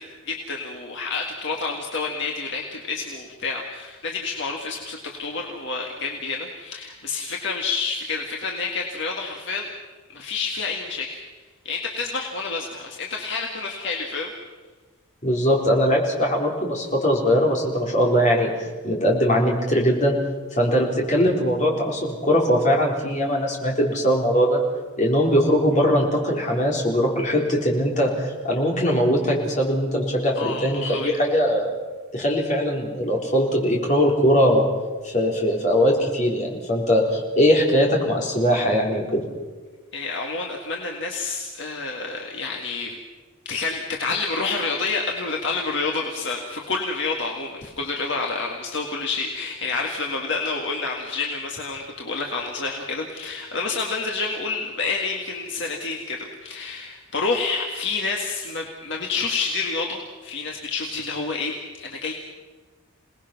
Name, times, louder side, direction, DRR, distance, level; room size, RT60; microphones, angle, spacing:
voice 1, 0.0-9.7 10.1-11.2 11.7-14.3 30.4-31.1 39.9-43.0 43.5-62.1, left 4 dB, 55° left, 0 dB, 1.9 m, -29 dB
voice 2, 15.2-20.2 20.6-24.6 25.0-31.7 32.1-34.7 35.0-39.2, equal, 35° left, -1 dB, 4.0 m, -21 dB
27.5 x 19.0 x 6.0 m, 1.3 s
head